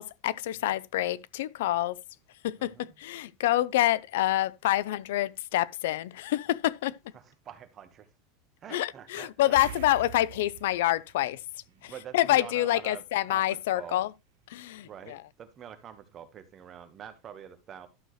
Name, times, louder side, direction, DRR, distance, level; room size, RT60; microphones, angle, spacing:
voice 1, 0.0-2.0 2.4-7.1 8.7-14.1 14.5-15.2, left 14 dB, 80° left, 0.4 m, -27 dB
voice 2, 2.6-2.9 7.1-8.1 8.6-9.6 11.7-14.0 14.8-17.9, right 9 dB, 25° right, 1.2 m, -46 dB
sound 1, 9.6-12.3 12.6-12.8 15.7-15.8 16.1-16.2, right 13 dB, 75° right, 0.4 m, -45 dB
12.0 x 6.3 x 3.1 m
supercardioid pair, 160°, 0 cm